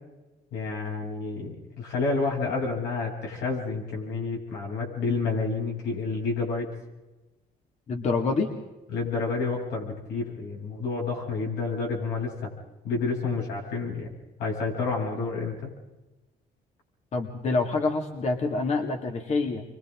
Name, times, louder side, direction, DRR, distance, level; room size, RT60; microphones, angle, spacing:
voice 1, 0.5-6.7 8.9-12.5 12.8-14.1 14.4-15.7, left 4 dB, 85° left, -1 dB, 7.9 m, -29 dB
voice 2, 7.9-8.5 17.1-19.6, left 3 dB, 40° left, 3 dB, 2.4 m, -26 dB
30.0 x 24.5 x 3.8 m, 1.1 s
cardioid pair, 110°, 17 cm